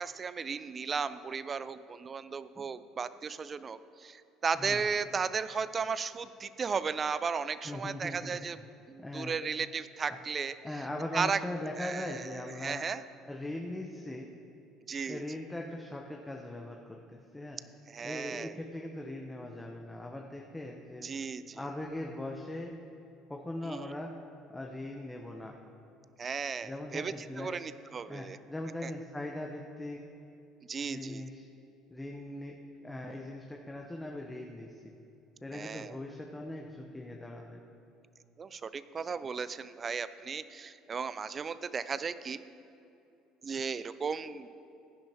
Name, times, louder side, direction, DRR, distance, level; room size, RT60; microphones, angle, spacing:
voice 1, 0.0-8.6 8.9-10.6 11.1-11.4 11.8-12.3 12.6-13.0 14.9-15.2 17.9-18.5 21.0-21.6 23.6-23.9 26.2-28.4 28.8-28.9 30.7-31.2 35.5-36.0 38.4-42.4 43.4-44.6, right 5 dB, 35° right, 14 dB, 0.5 m, -35 dB
voice 2, 4.5-4.8 7.6-8.4 9.0-9.4 10.1-10.2 10.6-12.9 13.3-14.3 15.1-17.6 18.0-21.1 21.5-22.7 23.3-24.1 24.5-25.6 26.6-27.6 28.1-30.0 30.8-31.5 31.9-34.8 35.4-37.6, left 1 dB, 15° left, 1 dB, 1.0 m, -40 dB
16.0 x 10.0 x 3.0 m, 2.7 s
hypercardioid pair, 65°, 0 cm